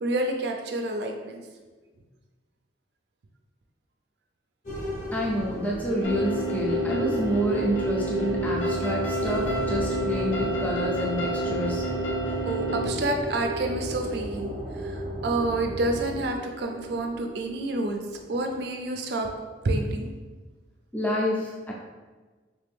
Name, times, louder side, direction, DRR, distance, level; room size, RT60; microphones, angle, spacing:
voice 1, 0.0-1.4 12.5-18.0 18.3-19.3 19.6-20.1, right 2 dB, 60° right, 3 dB, 0.4 m, -28 dB
sound 1, 4.6-18.2, equal, 45° left, 0.8 m, -33 dB
voice 2, 5.1-11.9 14.9-15.0 20.9-21.7, equal, 10° left, -3 dB, 0.5 m, -28 dB
sound 2, 6.0-12.9, right 3 dB, 90° left, 0.6 m, -31 dB
sound 3, 6.1-16.2, right 1 dB, 35° right, 0.7 m, -37 dB
3.3 x 2.5 x 3.5 m, 1.3 s
head